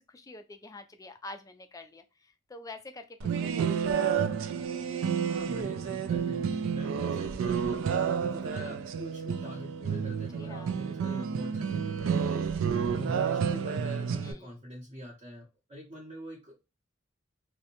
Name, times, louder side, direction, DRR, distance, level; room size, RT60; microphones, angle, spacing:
voice 1, 0.0-4.3 10.3-10.8 14.2-14.6, left 2 dB, 20° left, 7 dB, 0.3 m, -47 dB
sound 1, 3.2-14.3, right 7 dB, 80° right, 0.3 m, -30 dB
voice 2, 5.3-7.8 8.2-12.5 12.9-16.6, equal, 30° right, -4 dB, 0.7 m, -44 dB
2.6 x 2.1 x 2.8 m, 0.26 s
head